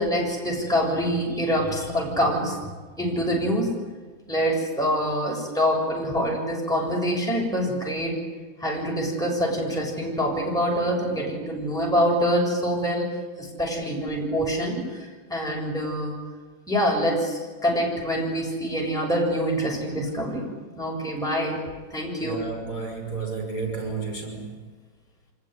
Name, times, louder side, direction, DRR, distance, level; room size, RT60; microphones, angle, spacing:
voice 1, 0.0-2.6 3.0-3.7 4.3-8.2 8.6-13.1 13.4-16.2 16.7-22.4, equal, ahead, -2 dB, 7.0 m, -25 dB
voice 2, 22.2-24.5, right 4 dB, 45° left, 3 dB, 6.7 m, -32 dB
26.0 x 21.0 x 9.7 m, 1.4 s
omnidirectional pair, 2.2 m